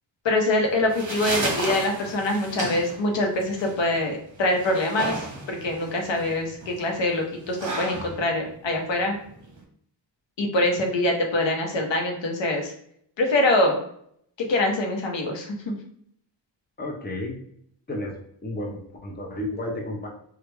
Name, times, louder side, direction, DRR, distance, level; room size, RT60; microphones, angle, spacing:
voice 1, 0.2-9.2 10.4-12.7 13.2-13.8 14.4-15.8, left 1 dB, 70° left, 2 dB, 0.9 m, -24 dB
sound 1, 0.6-9.6, right 2 dB, 40° right, 1.0 m, -34 dB
voice 2, 16.8-17.4 17.9-18.1 18.4-20.1, left 1 dB, 20° left, 0 dB, 0.8 m, -32 dB
3.3 x 2.4 x 3.1 m, 0.66 s
cardioid pair, 75°, 45 cm